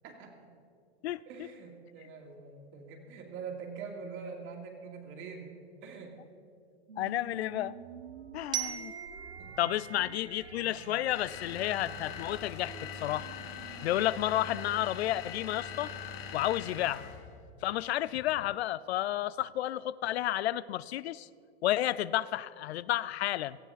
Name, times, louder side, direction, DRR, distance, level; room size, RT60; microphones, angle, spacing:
voice 1, 0.0-0.5 1.3-5.5 5.8-6.2 9.4-9.6, right 5 dB, 40° right, 2 dB, 2.6 m, -44 dB
sound 1, 6.9-15.6, right 5 dB, 85° right, 1.2 m, -51 dB
voice 2, 7.0-7.7 8.3-8.9 9.6-13.3 13.8-15.9 16.3-17.1 17.6-21.3 21.6-23.6, left 13 dB, 75° left, 18 dB, 0.5 m, -31 dB
Glockenspiel, 8.5-11.4, right 9 dB, 15° right, 0.5 m, -40 dB
sound 2, 11.1-17.3, left 7 dB, 50° left, 1.5 m, -42 dB
18.0 x 13.5 x 4.1 m, 2.3 s
hypercardioid pair, 120°, 32 cm